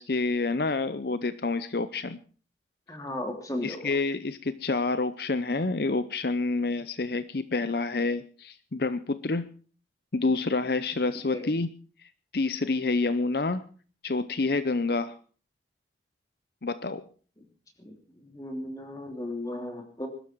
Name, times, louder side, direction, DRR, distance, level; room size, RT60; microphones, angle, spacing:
voice 1, 0.0-2.2 3.6-9.5 10.1-11.7 12.3-13.7 14.0-15.1 16.6-17.0, left 3 dB, 65° left, 13 dB, 0.7 m, -28 dB
voice 2, 2.9-3.9 11.3-11.5 17.8-20.1, left 1 dB, 20° left, 4 dB, 3.1 m, -35 dB
21.5 x 12.5 x 4.7 m, 0.41 s
head